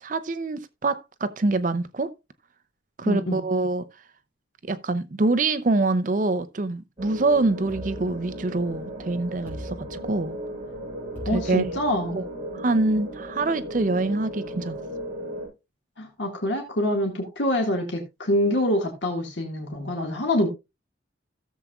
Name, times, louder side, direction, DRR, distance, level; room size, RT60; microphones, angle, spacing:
voice 1, 0.0-2.1 3.0-3.8 4.6-10.4 11.3-11.7 12.1-12.3 12.5-14.8, right 2 dB, 45° right, 0.5 m, -25 dB
voice 2, 3.0-3.4 11.3-12.2 16.0-20.5, left 1 dB, 80° left, 1.7 m, -25 dB
sound 1, 7.0-15.5, right 1 dB, 25° right, 7.1 m, -36 dB
sound 2, 7.7-8.8 9.5-10.5 11.2-12.3, equal, 10° left, 4.7 m, -41 dB
16.5 x 7.1 x 2.3 m
head